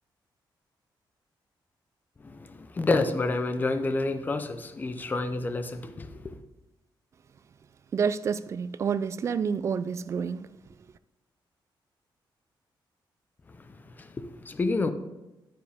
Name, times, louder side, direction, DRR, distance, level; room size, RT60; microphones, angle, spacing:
voice 1, 2.2-6.4 13.7-14.9, left 3 dB, 20° left, 0.6 m, -29 dB
voice 2, 7.9-10.5, right 6 dB, 35° right, 0.3 m, -28 dB
10.5 x 9.4 x 3.5 m
wide cardioid pair, 180°, 8 cm